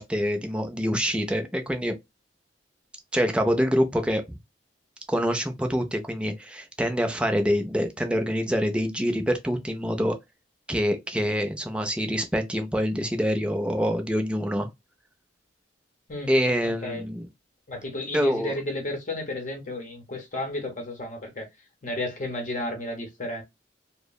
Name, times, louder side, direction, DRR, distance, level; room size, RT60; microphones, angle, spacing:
voice 1, 0.0-1.9 3.1-4.4 5.1-10.1 10.7-14.7 16.3-17.3 18.1-18.6, equal, 5° right, 0.4 m, -26 dB
voice 2, 16.6-17.0 17.7-21.5 21.8-23.4, left 1 dB, 45° left, 0.8 m, -32 dB
2.9 x 2.0 x 2.2 m
head